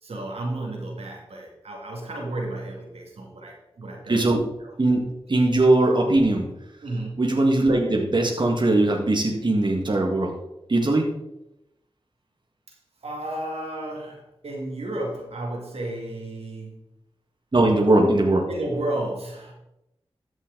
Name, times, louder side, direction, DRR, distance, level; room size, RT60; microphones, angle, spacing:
voice 1, 0.0-4.3 4.6-4.7 6.8-7.3 13.0-16.8 18.5-19.5, right 1 dB, 80° right, -1 dB, 2.3 m, -32 dB
voice 2, 4.1-4.5 4.8-6.5 7.2-10.3 10.7-11.1 17.5-18.5, right 2 dB, 50° right, 0 dB, 1.9 m, -20 dB
13.5 x 6.2 x 3.9 m, 0.86 s
cardioid pair, 45°, 10 cm